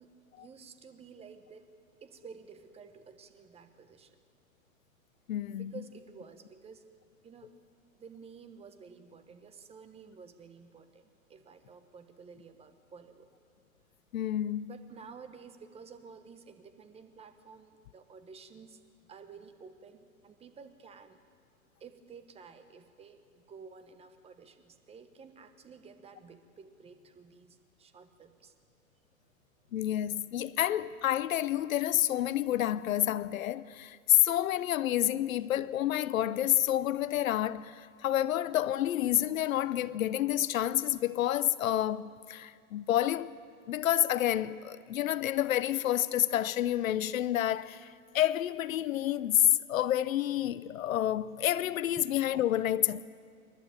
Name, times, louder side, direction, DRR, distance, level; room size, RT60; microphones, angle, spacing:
voice 1, 0.0-1.7 2.0-4.2 5.5-6.8 7.2-7.5 7.9-13.3 14.7-18.8 19.1-21.2 21.8-28.5 52.0-52.1, right 5 dB, 15° right, 1.1 m, -52 dB
voice 2, 5.3-5.7 14.1-14.7 29.7-43.3 43.7-53.0, left 12 dB, 70° left, 0.8 m, -29 dB
28.0 x 11.5 x 8.8 m
hypercardioid pair, 130°, 42 cm